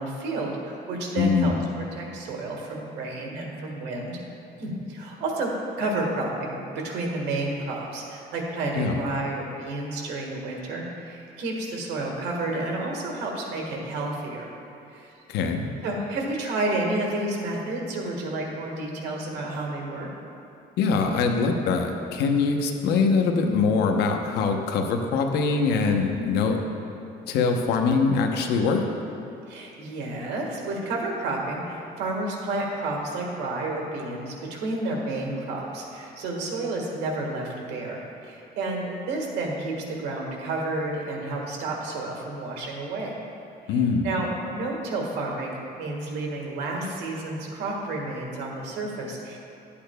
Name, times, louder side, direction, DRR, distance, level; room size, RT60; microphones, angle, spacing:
voice 1, 0.0-4.2 4.6-5.5 5.8-14.5 14.9-15.1 15.8-20.1 29.5-43.1 43.7-43.8 44.0-49.4, right 2 dB, 90° right, -1 dB, 1.5 m, -30 dB
voice 2, 1.2-1.6 8.7-9.0 15.3-15.7 20.8-26.6 27.3-28.8 43.7-44.1, left 4 dB, 80° left, 3 dB, 0.8 m, -23 dB
12.0 x 8.5 x 2.2 m, 2.9 s
cardioid pair, 110°, 17 cm